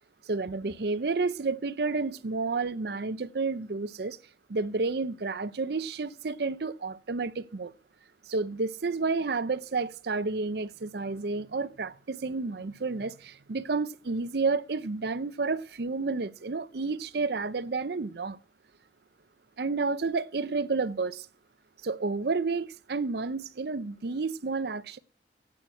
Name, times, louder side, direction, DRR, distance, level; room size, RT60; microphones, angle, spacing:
voice 1, 0.3-4.2 4.5-7.7 8.3-18.4 19.6-21.3 21.8-25.0, right 4 dB, 60° right, 0.5 m, -30 dB
9.0 x 8.6 x 7.6 m
head